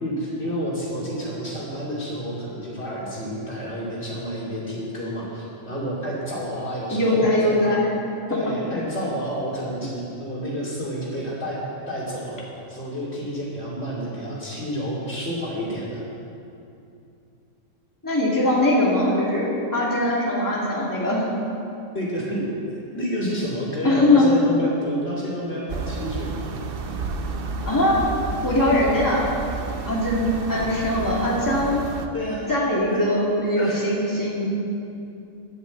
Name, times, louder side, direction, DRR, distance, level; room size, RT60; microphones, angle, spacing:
voice 1, 0.0-7.6 8.3-11.6 11.9-16.1 21.9-22.4 22.7-26.4 32.1-32.5 32.9-33.0 33.5-34.0, equal, 55° left, -6 dB, 2.9 m, -30 dB
voice 2, 6.9-8.0 8.3-8.4 18.0-21.3 23.8-24.3 27.7-28.0 28.4-29.3 29.8-31.9 32.5-34.5, left 1 dB, 15° left, -5 dB, 2.2 m, -21 dB
sound 1, 25.7-32.1, right 3 dB, 50° right, 0.9 m, -31 dB
10.5 x 9.7 x 8.0 m, 2.7 s
omnidirectional pair, 1.4 m